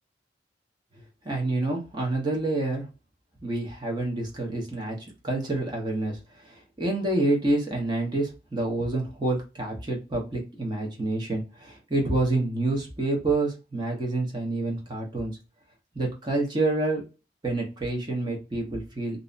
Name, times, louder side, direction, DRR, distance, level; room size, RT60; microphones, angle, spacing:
voice 1, 1.2-2.8 3.4-5.0 5.2-6.2 6.4-15.3 15.9-17.0 17.4-19.2, right 2 dB, 25° right, -1 dB, 0.8 m, -28 dB
2.6 x 2.1 x 2.4 m, 0.31 s
head